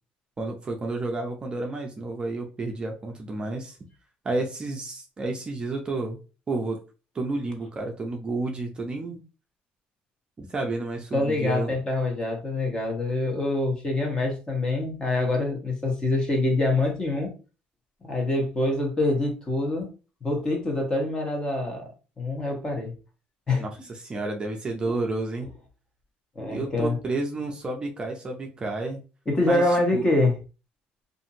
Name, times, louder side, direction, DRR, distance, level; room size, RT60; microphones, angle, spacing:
voice 1, 0.4-3.8 4.2-6.2 6.5-6.8 7.1-9.2 10.4-11.8 23.6-25.5 26.5-29.0 29.5-30.0, right 2 dB, 25° right, 1 dB, 0.5 m, -31 dB
voice 2, 11.1-17.3 18.0-19.9 20.2-21.9 22.2-22.9 23.5-23.6 26.4-27.0 29.3-30.4, left 2 dB, 20° left, 1 dB, 1.1 m, -25 dB
2.6 x 2.5 x 2.7 m, 0.33 s
cardioid pair, 125°, 4 cm